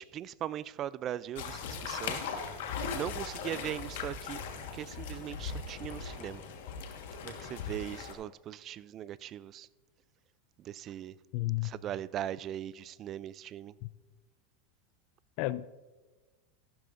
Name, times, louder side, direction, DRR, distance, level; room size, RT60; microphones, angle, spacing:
voice 1, 0.0-2.2 2.9-4.4 4.7-6.4 7.2-9.7 10.6-11.2 11.6-13.7, right 11 dB, 35° right, 0.3 m, -39 dB
sound 1, 1.3-8.1, left 5 dB, 75° left, 1.4 m, -39 dB
voice 2, 11.3-11.7 13.8-13.9 15.4-15.7, left 18 dB, 55° left, 0.3 m, -32 dB
14.0 x 12.0 x 2.5 m
supercardioid pair, 135°, 0 cm